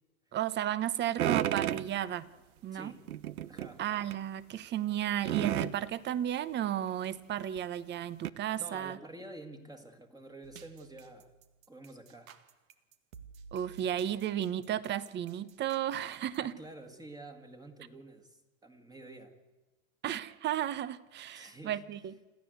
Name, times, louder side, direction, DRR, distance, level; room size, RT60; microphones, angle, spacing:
voice 1, 0.3-2.3 2.6-2.9 3.8-9.0 13.5-16.6 20.0-22.1, right 11 dB, 25° right, 18 dB, 1.0 m, -33 dB
sound 1, 1.2-1.9 3.1-3.7 4.1-4.2 5.3-5.8 7.0-7.1 7.6-7.7 8.2-8.3, right 12 dB, 90° right, 1.0 m, -31 dB
voice 2, 2.7-3.1 3.5-3.8 8.6-11.3 11.7-12.3 16.4-19.4 21.3-21.8, right 2 dB, 10° right, 4 dB, 1.9 m, -49 dB
sound 2, 10.4-16.4, right 6 dB, 70° right, 2.0 m, -54 dB
27.5 x 14.5 x 8.0 m, 1.2 s
hypercardioid pair, 130°, 42 cm